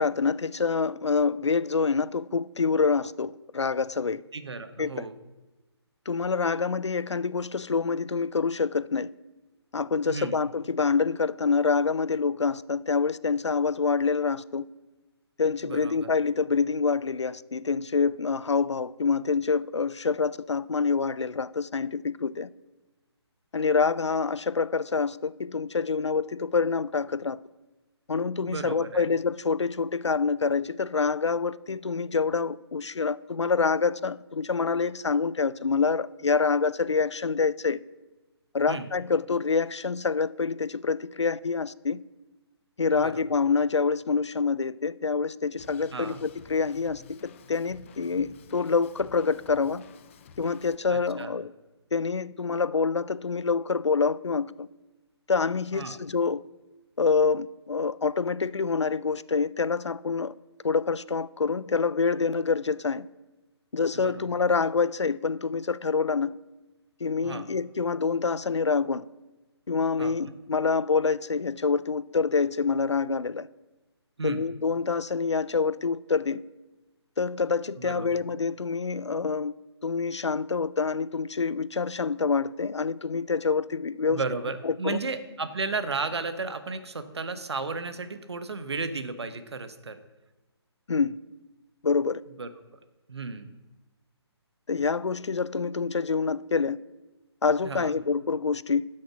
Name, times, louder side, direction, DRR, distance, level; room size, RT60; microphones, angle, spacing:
voice 1, 0.0-4.2 4.8-5.1 6.1-9.1 9.7-14.7 15.4-22.5 23.5-27.4 28.1-37.8 38.5-42.0 42.8-49.8 50.4-51.5 51.9-54.7 55.3-56.4 57.0-60.3 60.6-63.1 63.7-66.3 67.0-69.0 69.7-73.5 74.2-76.4 77.2-79.5 79.8-84.2 84.6-85.0 90.9-91.2 91.8-92.2 94.7-96.8 97.4-98.9, left 5 dB, 85° left, 0.4 m, -26 dB
voice 2, 4.3-5.1 10.0-10.4 15.6-16.1 28.4-29.1 38.7-38.9 42.9-43.3 45.9-46.2 50.9-51.3 55.7-56.0 63.9-64.3 67.2-67.5 70.0-70.2 74.2-74.5 77.8-78.2 84.1-90.0 92.4-92.5 93.1-93.5 97.6-98.0, right 4 dB, 70° right, 1.1 m, -34 dB
Drum kit, 45.6-50.8, left 7 dB, 30° left, 0.5 m, -51 dB
11.5 x 6.4 x 6.1 m
figure-of-eight pair, 145°, 14 cm